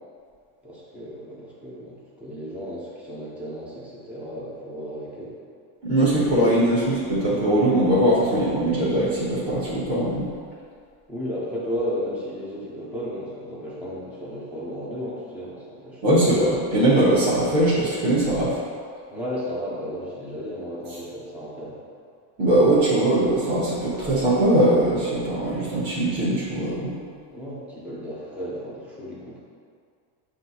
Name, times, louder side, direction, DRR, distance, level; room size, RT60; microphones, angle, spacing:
voice 1, 0.6-5.3 11.1-16.2 19.1-21.8 27.3-29.4, equal, 5° right, -8 dB, 0.3 m, -34 dB
voice 2, 5.8-10.3 16.0-18.6 22.4-27.0, right 1 dB, 25° right, -11 dB, 1.0 m, -21 dB
7.3 x 2.7 x 2.7 m, 2.1 s
cardioid pair, 160°, 50 cm